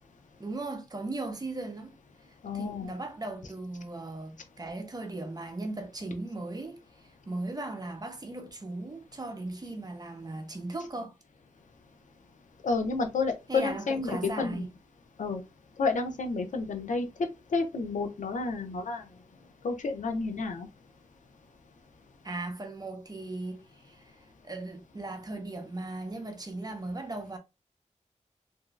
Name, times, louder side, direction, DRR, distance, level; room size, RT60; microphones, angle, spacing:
voice 1, 0.4-2.0 2.5-11.1 13.5-14.7 22.2-27.4, right 2 dB, 30° right, 0.7 m, -38 dB
voice 2, 2.4-2.9 12.6-14.7 15.2-15.4 15.8-17.0 17.5-19.0 19.6-20.7, left 4 dB, 90° left, 0.5 m, -30 dB
2.9 x 2.6 x 2.3 m
wide cardioid pair, 85°, 13 cm